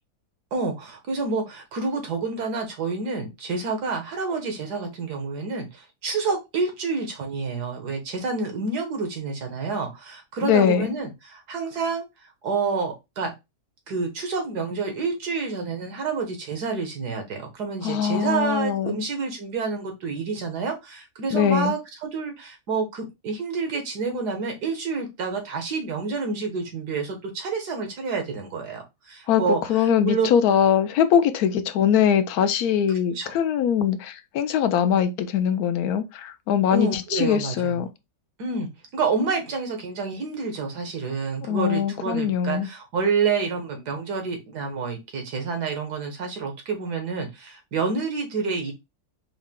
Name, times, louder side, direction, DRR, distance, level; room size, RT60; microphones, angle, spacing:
voice 1, 0.5-12.0 12.4-13.3 13.9-30.3 33.1-33.4 36.7-37.8 38.4-48.7, right 4 dB, 80° right, 1.6 m, -28 dB
voice 2, 10.4-10.9 17.8-19.0 21.3-21.7 29.3-29.4 29.7-37.9 41.5-42.7, left 8 dB, 75° left, 1.0 m, -22 dB
4.8 x 2.1 x 3.5 m
omnidirectional pair, 1.7 m